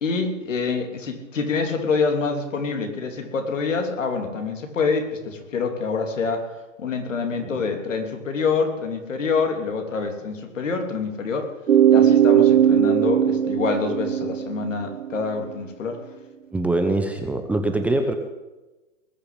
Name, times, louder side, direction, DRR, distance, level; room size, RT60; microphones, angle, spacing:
voice 1, 0.0-6.5 6.8-11.5 11.9-16.0, left 4 dB, 75° left, 5 dB, 3.2 m, -26 dB
sound 1, 11.7-15.3, right 10 dB, 75° right, 1.1 m, -18 dB
voice 2, 16.5-18.1, right 2 dB, 5° right, 4 dB, 0.7 m, -23 dB
19.5 x 6.9 x 8.4 m, 1.1 s
hypercardioid pair, 140°, 38 cm